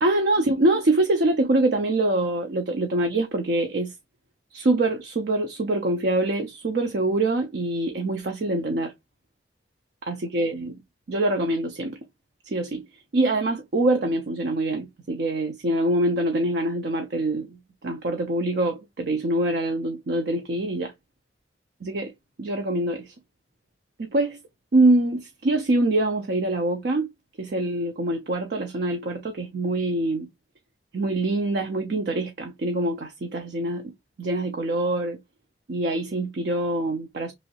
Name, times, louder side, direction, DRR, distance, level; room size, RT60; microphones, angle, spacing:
voice 1, 0.0-3.9 4.5-8.9 10.1-10.7 11.1-12.0 12.5-12.9 13.1-20.9 21.8-22.1 22.4-23.1 24.0-24.4 24.7-27.1 27.4-30.3 30.9-33.9 34.2-35.2 35.7-37.3, right 2 dB, 65° right, 0.5 m, -24 dB
3.0 x 2.6 x 2.7 m
head